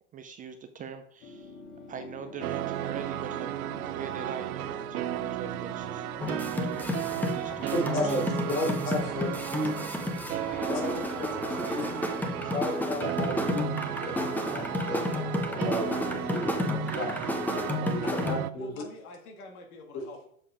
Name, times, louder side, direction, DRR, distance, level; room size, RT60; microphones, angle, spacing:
voice 1, 0.1-1.6 1.9-3.5 3.9-6.0 6.6-8.9 9.3-9.7 10.1-12.6, right 7 dB, 20° right, 8 dB, 0.4 m, -43 dB
sound 1, 1.2-6.2, left 3 dB, 45° left, 1.9 m, -46 dB
sound 2, 2.4-18.5, right 14 dB, 85° right, 0.6 m, -34 dB
sound 3, 6.2-18.4, left 2 dB, 5° left, 0.7 m, -32 dB
voice 2, 7.7-8.3 8.5-9.7 10.7-11.3 11.7-12.0 12.5-14.1 14.5-17.2 17.9-18.7 19.9-20.0, left 2 dB, 65° left, 0 dB, 3.6 m, -33 dB
voice 3, 18.6-20.2, left 2 dB, 80° left, 3 dB, 1.9 m, -46 dB
7.1 x 5.4 x 4.9 m, 0.67 s
hypercardioid pair, 115°, 43 cm